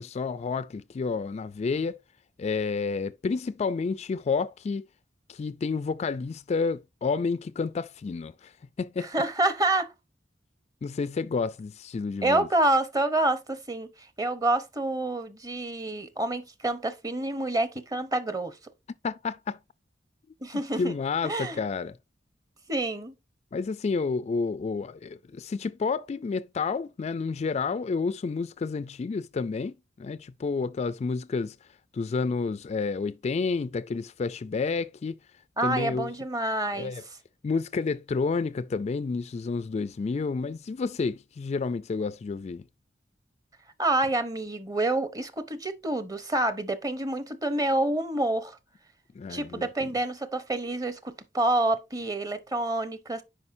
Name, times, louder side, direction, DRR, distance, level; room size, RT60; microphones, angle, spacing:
voice 1, 0.0-2.0 2.4-4.9 5.3-8.5 8.8-9.1 10.8-12.5 19.0-19.6 20.8-22.0 23.5-31.6 31.9-35.2 35.6-36.1 36.8-37.0 37.4-42.6 49.1-49.7, left 4 dB, 35° left, 0.3 m, -30 dB
voice 2, 9.0-9.9 12.2-13.9 14.2-18.6 20.4-20.9 21.2-21.6 22.7-23.1 35.6-36.9 43.8-48.6 49.3-53.2, right 2 dB, 20° right, 0.8 m, -27 dB
9.7 x 5.0 x 2.6 m
head